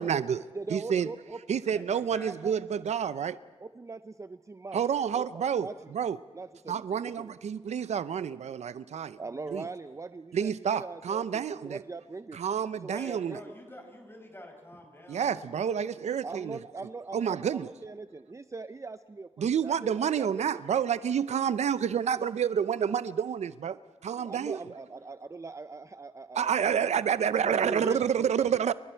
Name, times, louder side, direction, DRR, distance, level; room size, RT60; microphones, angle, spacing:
voice 1, 0.0-1.1 1.5-3.4 4.7-6.2 6.7-9.2 9.5-9.7 10.3-11.8 12.3-13.4 15.1-16.6 17.1-17.7 19.4-24.6 26.3-28.7, right 8 dB, 85° right, 15 dB, 0.5 m, -29 dB
voice 2, 0.5-1.4 1.7-2.5 3.6-4.8 5.2-5.9 6.3-7.3 9.2-12.4 12.8-13.5 16.2-20.4 24.2-26.9 27.3-28.3, right 3 dB, 25° right, 12 dB, 0.5 m, -41 dB
voice 3, 1.7-2.5 13.0-15.7, left 1 dB, 20° left, 2 dB, 5.9 m, -49 dB
29.5 x 24.0 x 4.5 m, 1.5 s
cardioid pair, 75°, 11 cm